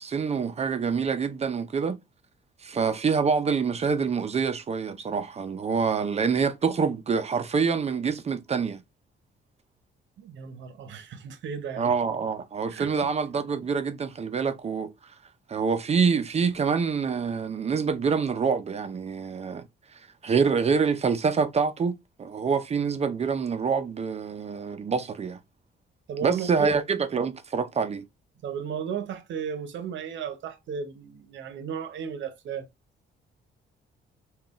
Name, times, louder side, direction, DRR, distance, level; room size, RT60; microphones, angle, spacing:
voice 1, 0.0-2.0 2.6-8.8 11.8-15.1 15.5-19.7 19.9-25.4 26.2-28.1, right 5 dB, 35° right, 0.4 m, -26 dB
voice 2, 10.2-11.9 12.7-12.9 26.1-26.7 28.4-32.7, right 7 dB, 70° right, 0.7 m, -34 dB
3.7 x 2.3 x 2.4 m
cardioid pair, 90°, 20 cm